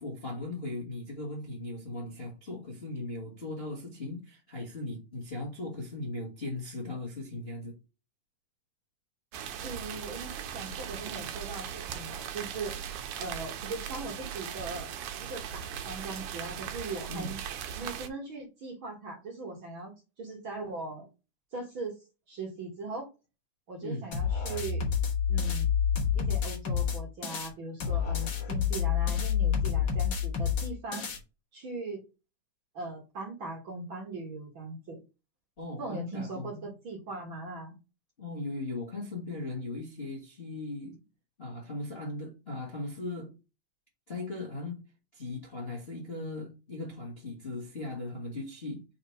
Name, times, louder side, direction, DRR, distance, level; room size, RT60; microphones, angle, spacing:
voice 1, 0.0-7.8 17.1-17.3 23.8-24.0 35.6-36.7 38.2-41.0 41.4-43.3 44.1-44.8 45.1-48.8, left 2 dB, 30° left, 1.2 m, -38 dB
sound 1, 9.3-18.1, right 9 dB, 75° right, 2.0 m, -39 dB
voice 2, 9.6-12.7 13.2-14.9 15.2-17.4 17.8-19.9 20.2-21.1 21.5-22.0 22.3-23.1 23.7-24.8 25.3-25.7 26.1-31.1 31.5-32.0 32.7-35.0 35.8-37.8, right 3 dB, 50° right, 1.7 m, -39 dB
sound 2, 24.1-27.5 27.8-31.2, left 8 dB, 60° left, 1.2 m, -28 dB
5.0 x 4.3 x 4.7 m
omnidirectional pair, 3.8 m